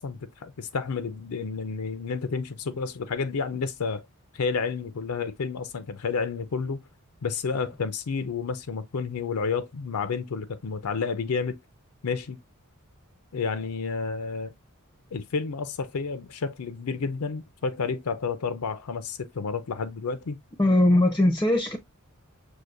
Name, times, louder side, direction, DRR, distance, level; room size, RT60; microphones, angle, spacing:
voice 1, 0.0-4.0 4.3-6.8 7.2-11.6 12.0-12.4 13.3-14.5 15.1-20.4, left 5 dB, 85° left, 0.5 m, -30 dB
voice 2, 20.6-21.8, left 1 dB, 15° left, 0.4 m, -20 dB
6.2 x 2.5 x 2.4 m
head